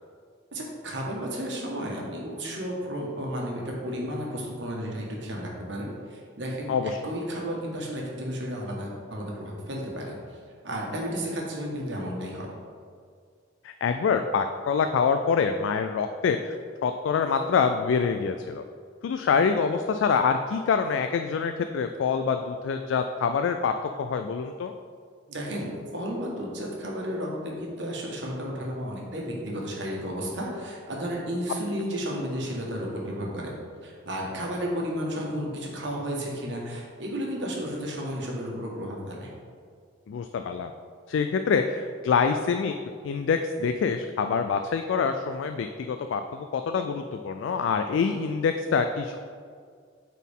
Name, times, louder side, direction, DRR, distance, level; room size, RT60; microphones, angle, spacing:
voice 1, 0.5-12.5 25.3-33.6 33.8-39.3, equal, 65° right, -2 dB, 1.3 m, -33 dB
voice 2, 13.6-16.6 16.8-18.6 19.0-24.7 40.1-40.7 41.1-42.7 43.0-49.2, left 5 dB, 75° left, 7 dB, 0.3 m, -26 dB
8.3 x 4.2 x 3.6 m, 2.1 s
head